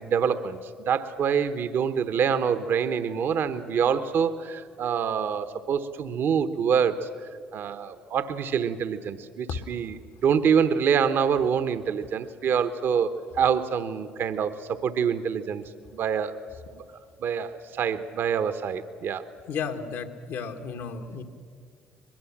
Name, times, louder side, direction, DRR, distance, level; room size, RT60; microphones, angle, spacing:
voice 1, 0.0-7.1 7.5-15.6 15.9-16.4 16.7-16.8 17.2-19.2, right 7 dB, 60° right, 11 dB, 1.1 m, -26 dB
voice 2, 19.5-21.2, left 6 dB, 70° left, 7 dB, 1.7 m, -33 dB
22.5 x 21.5 x 7.3 m, 2.1 s
hypercardioid pair, 60°, 4 cm